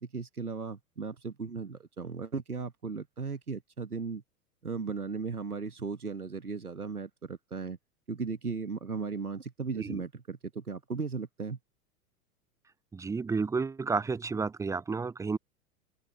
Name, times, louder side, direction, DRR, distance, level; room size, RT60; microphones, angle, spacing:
voice 1, 0.0-4.2 4.6-7.8 8.1-11.6, right 4 dB, 90° right, 1.4 m, -36 dB
voice 2, 12.9-15.4, right 4 dB, 5° right, 0.6 m, -31 dB
figure-of-eight pair, 90°, 44 cm